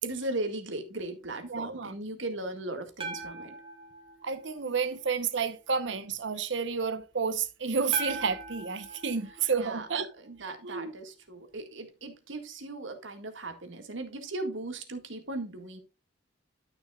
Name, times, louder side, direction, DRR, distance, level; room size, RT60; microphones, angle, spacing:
voice 1, 0.0-3.5 9.6-9.9 10.2-15.8, right 2 dB, 85° right, 1.9 m, -37 dB
voice 2, 1.4-1.9 4.2-10.1 10.6-10.9, right 5 dB, 70° right, 1.0 m, -30 dB
sound 1, 3.0-5.2 7.9-10.3, right 3 dB, 30° right, 1.2 m, -41 dB
12.0 x 6.4 x 2.4 m
head